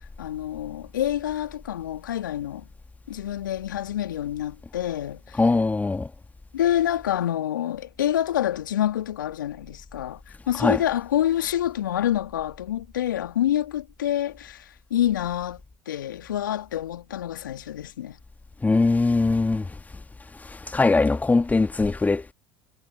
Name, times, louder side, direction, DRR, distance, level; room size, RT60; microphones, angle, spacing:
voice 1, 0.0-2.7 3.1-5.4 6.5-15.6 15.9-18.2, left 11 dB, 80° left, 2.3 m, -27 dB
voice 2, 5.4-6.1 10.6-10.8 18.6-19.6 20.7-22.3, left 3 dB, 15° left, 1.9 m, -21 dB
hypercardioid pair, 65°, 10 cm